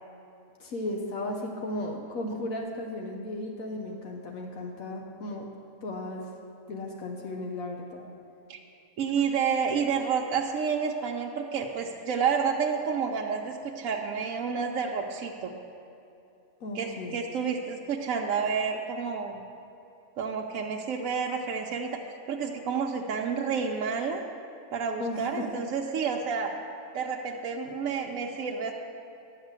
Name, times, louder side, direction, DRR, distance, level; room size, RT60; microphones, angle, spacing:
voice 1, 0.6-5.5 5.8-6.2 6.7-8.1 16.6-17.2 25.0-25.5, left 1 dB, 75° left, 1 dB, 1.3 m, -35 dB
voice 2, 9.0-15.5 16.7-19.4 20.2-22.0 22.3-24.2 24.7-26.5 26.9-28.7, right 6 dB, 70° right, 0 dB, 1.0 m, -29 dB
11.0 x 5.6 x 8.1 m, 2.7 s
omnidirectional pair, 1.5 m